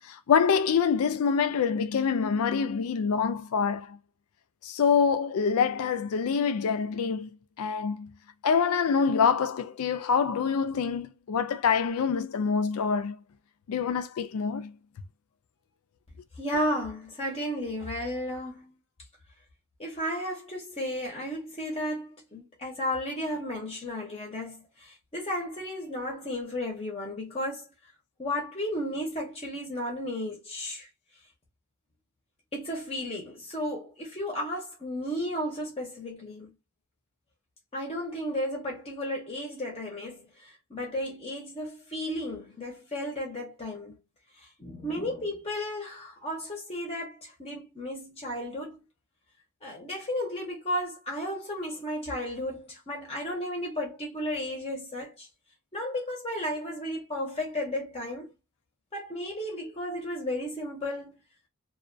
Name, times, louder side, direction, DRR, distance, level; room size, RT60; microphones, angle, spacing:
voice 1, 0.1-4.0 4.6-8.1 8.4-13.2 13.7-14.7, left 6 dB, 80° left, 0.4 m, -26 dB
voice 2, 16.4-18.7 19.8-27.7 28.2-30.9 32.5-36.5 37.7-43.9 44.6-48.8 49.6-55.3 55.7-58.3 58.9-61.1, left 1 dB, 25° left, 0.7 m, -34 dB
2.3 x 2.1 x 2.5 m
head